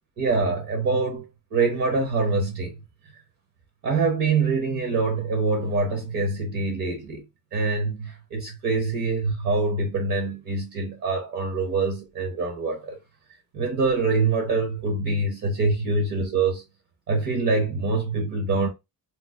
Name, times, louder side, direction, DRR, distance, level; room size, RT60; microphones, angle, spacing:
voice 1, 0.2-2.7 3.8-7.2 7.5-13.0 13.5-16.6 17.1-18.7, right 3 dB, 55° right, 1.0 m, -25 dB
2.9 x 2.1 x 3.5 m
cardioid pair, 150°, 35 cm